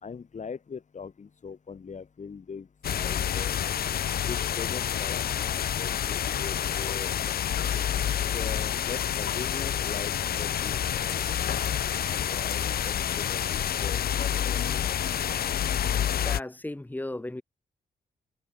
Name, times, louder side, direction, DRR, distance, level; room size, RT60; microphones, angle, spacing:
voice 1, 0.0-3.5 4.3-7.1 8.3-11.4 12.0-15.0, left 5 dB, 50° left, 5.3 m, -41 dB
sound 1, 2.8-16.4, left 9 dB, 70° left, 1.2 m, -28 dB
voice 2, 16.0-17.4, left 1 dB, 10° left, 2.1 m, -36 dB
cardioid pair, 80°, 16 cm